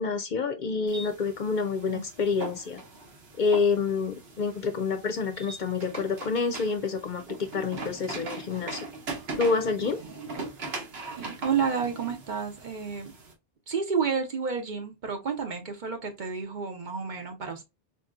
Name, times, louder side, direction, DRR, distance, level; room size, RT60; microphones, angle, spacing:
voice 1, 0.0-2.8 3.4-7.2 7.5-8.8 9.4-10.0, left 4 dB, 60° left, 0.6 m, -28 dB
sound 1, 0.9-13.3, right 3 dB, 80° right, 1.2 m, -40 dB
voice 2, 11.1-13.1 13.7-17.6, right 6 dB, 55° right, 0.9 m, -30 dB
3.9 x 2.8 x 2.3 m
omnidirectional pair, 1.0 m